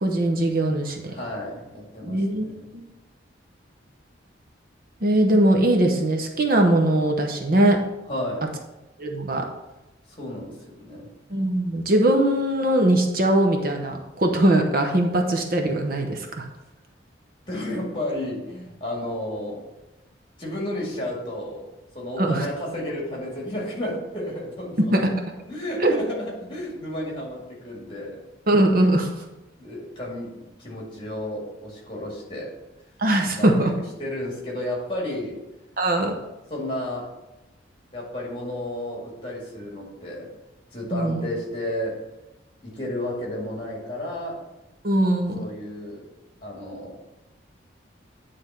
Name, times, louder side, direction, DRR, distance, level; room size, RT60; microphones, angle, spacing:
voice 1, 0.0-1.1 2.1-2.5 2.7-2.9 5.0-7.8 9.0-9.5 11.3-16.5 22.2-22.5 24.9-25.0 25.8-25.9 28.5-29.2 33.0-33.7 35.8-36.2 40.9-41.3 44.8-45.4, right 1 dB, 45° right, 2 dB, 0.7 m, -21 dB
voice 2, 1.1-2.6 8.1-8.5 10.1-11.1 17.5-19.7 20.4-21.7 21.9-25.0 25.5-28.2 29.6-32.6 33.4-33.7 34.0-35.4 36.5-37.1 37.9-40.3 40.7-42.0 42.6-44.4 45.3-46.1 46.4-47.0, left 1 dB, 25° left, -3 dB, 2.1 m, -32 dB
9.5 x 3.4 x 5.5 m, 0.99 s
head